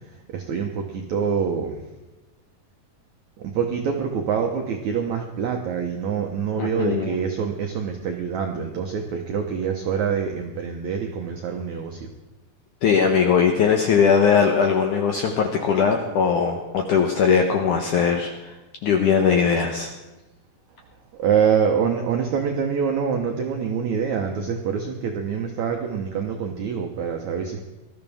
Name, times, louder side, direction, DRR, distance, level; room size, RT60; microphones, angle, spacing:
voice 1, 0.3-1.8 3.4-12.1 21.1-27.6, right 6 dB, 85° right, 3 dB, 1.6 m, -25 dB
voice 2, 6.6-7.2 12.8-18.5 18.8-19.9, left 6 dB, 75° left, 3 dB, 1.8 m, -20 dB
20.0 x 13.5 x 3.5 m, 1.1 s
omnidirectional pair, 4.8 m